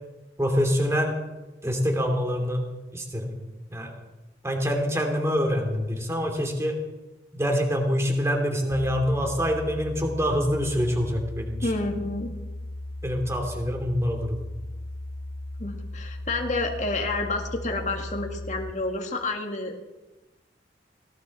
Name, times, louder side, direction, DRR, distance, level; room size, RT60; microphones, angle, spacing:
voice 1, 0.4-1.2 1.6-2.7 2.9-3.4 3.7-3.9 4.4-6.8 7.3-11.7 13.0-14.4, equal, 15° right, 3 dB, 2.9 m, -25 dB
sound 1, 8.7-18.7, left 1 dB, 65° left, 1.7 m, -37 dB
voice 2, 11.6-12.3 15.6-19.8, left 2 dB, 40° left, 2 dB, 1.8 m, -29 dB
18.5 x 18.5 x 4.2 m, 1.1 s
head